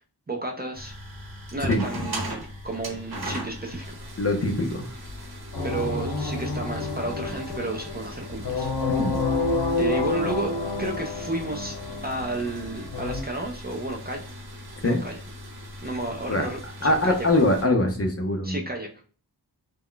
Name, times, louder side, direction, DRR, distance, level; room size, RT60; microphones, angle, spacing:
voice 1, 0.3-0.9 1.5-4.0 5.6-8.7 9.8-10.5 10.8-11.8 12.0-14.2 14.8-15.1 15.8-17.3 18.4-18.9, right 2 dB, 25° right, 1 dB, 0.4 m, -32 dB
sound 1, 0.7-17.7, equal, 60° right, 0.9 m, -39 dB
voice 2, 1.7-2.1 4.2-4.9 9.0-9.1 14.8-15.0 16.3-16.5 16.8-18.6, left 1 dB, 35° left, 4 dB, 0.5 m, -23 dB
sound 2, 5.5-13.2, left 3 dB, 70° left, 1.0 m, -29 dB
2.3 x 2.0 x 3.7 m, 0.40 s
wide cardioid pair, 80°, 42 cm